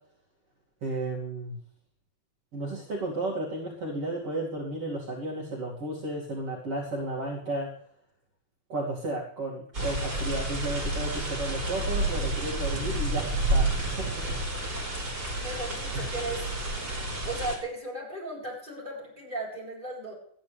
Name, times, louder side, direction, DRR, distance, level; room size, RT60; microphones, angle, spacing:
voice 1, 0.8-1.6 2.5-7.7 8.7-14.5 15.9-16.1, right 2 dB, 50° right, -4 dB, 3.6 m, -33 dB
sound 1, 9.7-17.6, right 2 dB, 30° right, 5.9 m, -30 dB
voice 2, 15.4-16.4 17.2-20.1, right 2 dB, 15° right, -4 dB, 7.8 m, -36 dB
21.0 x 13.5 x 3.5 m, 0.63 s
omnidirectional pair, 3.3 m